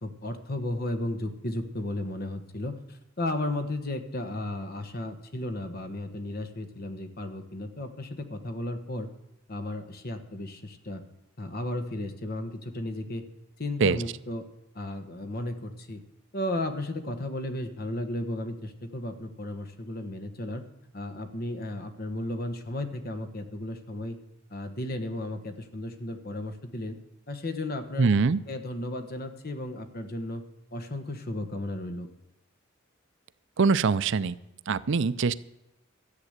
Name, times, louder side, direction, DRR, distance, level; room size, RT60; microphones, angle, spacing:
voice 1, 0.0-9.1 9.5-11.0 11.4-13.2 13.6-14.5 14.7-16.0 16.3-20.6 20.9-24.2 24.5-27.0 27.3-28.2 28.5-30.4 30.7-32.1, left 1 dB, 50° left, 7 dB, 1.4 m, -34 dB
voice 2, 28.0-28.4 33.6-34.4 34.7-35.4, right 4 dB, 65° right, 16 dB, 0.5 m, -23 dB
13.5 x 8.3 x 8.0 m, 0.95 s
head